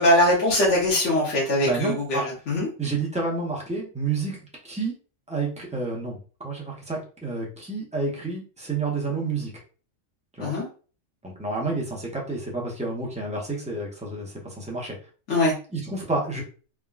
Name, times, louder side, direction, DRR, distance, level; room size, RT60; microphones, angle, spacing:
voice 1, 0.0-2.7 10.4-10.6 15.3-15.5, left 1 dB, 70° left, -5 dB, 1.2 m, -21 dB
voice 2, 1.6-2.2 2.8-4.9 5.3-6.2 6.4-9.5 10.3-10.5 11.2-15.0 15.7-16.4, right 3 dB, 10° right, -2 dB, 0.4 m, -29 dB
3.5 x 2.1 x 2.3 m, 0.37 s
omnidirectional pair, 1.3 m